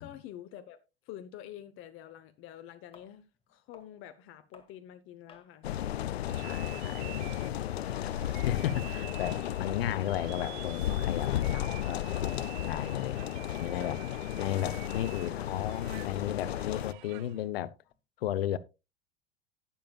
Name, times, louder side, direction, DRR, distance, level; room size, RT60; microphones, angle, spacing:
voice 1, 0.0-5.7, left 11 dB, 45° left, 1.0 m, -48 dB
sound 1, 2.9-5.5 5.9-6.2 6.6-13.0 13.2-18.0, left 4 dB, 20° left, 2.2 m, -58 dB
sound 2, 5.6-16.9, left 11 dB, 85° left, 0.5 m, -34 dB
voice 2, 6.3-14.0 14.4-17.8 18.2-18.6, left 12 dB, 70° left, 0.9 m, -35 dB
sound 3, 6.3-17.5, right 24 dB, 50° right, 0.4 m, -49 dB
19.0 x 7.3 x 2.3 m
hypercardioid pair, 90°, 30 cm